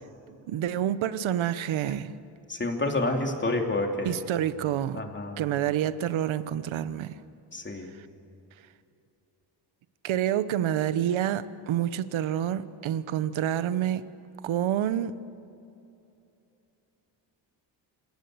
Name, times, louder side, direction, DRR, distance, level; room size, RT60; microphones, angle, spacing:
voice 1, 0.5-2.1 4.0-5.0 5.4-7.1 10.0-14.1 14.4-15.1, right 10 dB, 90° right, 14 dB, 1.1 m, -28 dB
voice 2, 2.5-4.2 4.9-5.4 7.5-7.9, left 2 dB, 25° left, 2 dB, 3.1 m, -29 dB
28.5 x 18.0 x 8.0 m, 2.8 s
cardioid pair, 130°, 46 cm